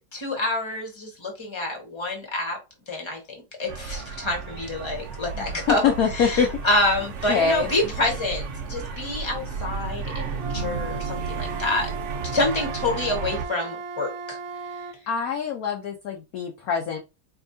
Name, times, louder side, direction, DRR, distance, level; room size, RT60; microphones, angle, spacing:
voice 1, 0.1-2.6 2.9-11.9 12.3-14.4, left 2 dB, 15° left, 1 dB, 1.0 m, -27 dB
sound 1, 3.7-13.4, right 5 dB, 90° right, 0.6 m, -33 dB
voice 2, 5.4-6.5 7.3-7.9 15.1-17.0, left 6 dB, 70° left, 3 dB, 0.8 m, -24 dB
Wind instrument woodwind instrument, 10.4-15.0, right 5 dB, 70° right, 1.3 m, -36 dB
4.6 x 2.8 x 2.7 m, 0.25 s
omnidirectional pair, 2.3 m